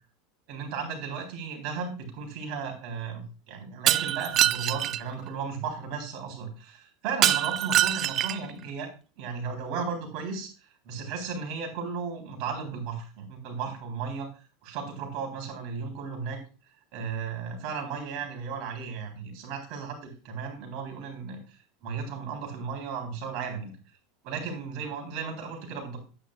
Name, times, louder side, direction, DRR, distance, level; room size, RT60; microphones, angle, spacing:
voice 1, 0.5-8.9 9.2-10.5 10.8-14.3 14.6-16.4 16.9-21.4 21.8-23.7 24.2-26.0, right 5 dB, 60° right, 2 dB, 3.7 m, -35 dB
Shatter, 3.9-5.0 7.2-8.5, right 12 dB, 40° right, 0.3 m, -24 dB
9.9 x 9.4 x 2.4 m, 0.35 s
supercardioid pair, 120°, 0 cm